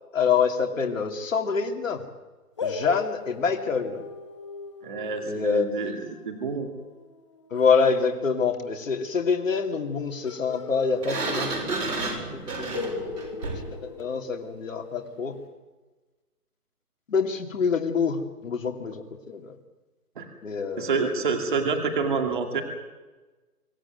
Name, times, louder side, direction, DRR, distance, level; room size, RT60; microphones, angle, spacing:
voice 1, 0.1-2.0 2.6-4.0 5.3-5.7 7.5-11.5 12.3-12.9 13.8-15.3 17.1-19.6 20.4-21.1, left 5 dB, 55° left, 4 dB, 2.9 m, -26 dB
sound 1, 2.6-8.0 10.2-11.7 12.0-12.1 12.7-14.9, left 4 dB, 20° left, 1.1 m, -39 dB
voice 2, 4.8-6.7 20.2-20.3 20.8-22.6, right 5 dB, 30° right, 5 dB, 2.4 m, -27 dB
Sliding door, 11.0-13.8, right 3 dB, 80° right, 7.2 m, -31 dB
25.0 x 14.5 x 9.5 m, 1.2 s
hypercardioid pair, 170°, 46 cm